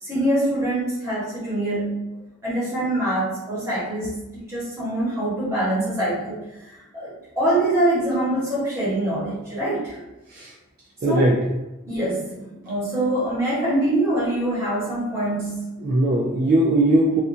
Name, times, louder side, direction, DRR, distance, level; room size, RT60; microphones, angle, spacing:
voice 1, 0.0-2.0 2.4-4.2 4.5-10.0 11.1-11.3 11.9-15.6, right 1 dB, 15° right, -10 dB, 1.2 m, -24 dB
voice 2, 11.0-11.4 15.8-17.2, right 1 dB, 45° right, -4 dB, 0.3 m, -19 dB
2.4 x 2.4 x 2.6 m, 1.0 s
head